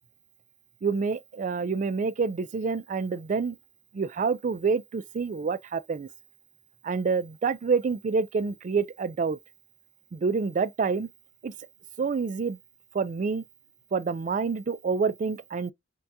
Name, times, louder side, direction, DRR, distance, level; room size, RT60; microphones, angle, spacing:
voice 1, 0.8-3.6 3.9-6.1 6.8-9.4 10.1-11.1 11.4-11.5 12.0-12.6 12.9-13.4 13.9-15.7, right 5 dB, 45° right, 0.3 m, -27 dB
4.5 x 2.2 x 2.7 m
head